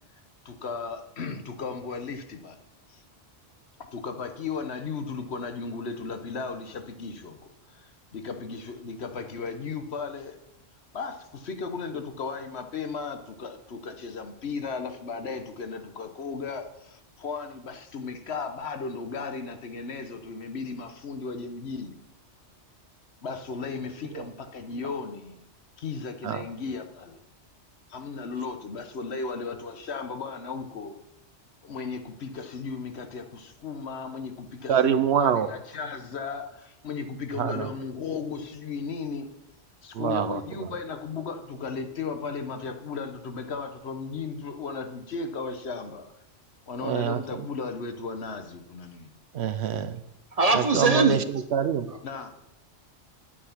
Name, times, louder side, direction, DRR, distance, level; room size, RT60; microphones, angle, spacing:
voice 1, 0.4-2.6 2.9-3.0 3.9-10.4 10.9-22.0 23.2-25.4 25.8-27.2 27.9-31.0 31.6-39.3 39.8-46.1 46.7-49.1 52.0-52.3, left 4 dB, 65° left, 8 dB, 1.2 m, -35 dB
voice 2, 34.7-35.5 37.4-37.7 39.9-40.7 46.8-47.5 49.3-50.0 50.5-51.2 51.5-51.9, right 8 dB, 65° right, 12 dB, 0.8 m, -25 dB
voice 3, 50.3-51.2 51.9-52.0, right 3 dB, 35° right, 7 dB, 0.9 m, -22 dB
9.6 x 8.7 x 5.8 m, 0.84 s
omnidirectional pair, 1.2 m